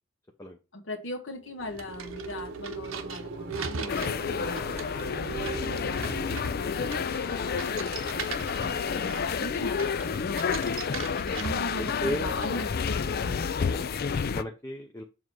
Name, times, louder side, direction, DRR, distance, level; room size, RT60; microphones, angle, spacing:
voice 1, 0.7-5.3 5.8-10.5 11.2-13.5, left 1 dB, 65° left, 5 dB, 1.4 m, -40 dB
sound 1, 1.4-10.0, right 4 dB, 55° right, 0.9 m, -41 dB
sound 2, 1.6-13.2, right 5 dB, 85° right, 0.9 m, -41 dB
sound 3, 3.9-14.4, left 6 dB, 50° left, 0.4 m, -30 dB
voice 2, 12.0-12.3 13.6-13.9 14.3-15.0, equal, 15° left, 2 dB, 0.7 m, -36 dB
7.3 x 3.0 x 6.1 m, 0.29 s
head